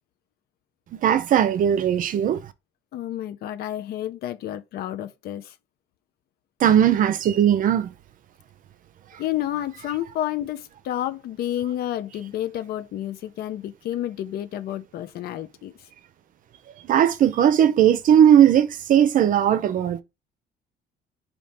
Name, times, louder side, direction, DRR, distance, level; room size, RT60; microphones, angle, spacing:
voice 1, 1.0-2.4 6.6-7.9 16.9-20.0, right 9 dB, 55° right, 0.5 m, -18 dB
voice 2, 2.9-5.5 9.2-15.7, left 12 dB, 70° left, 0.5 m, -30 dB
4.1 x 2.8 x 3.4 m
cardioid pair, 110°, 17 cm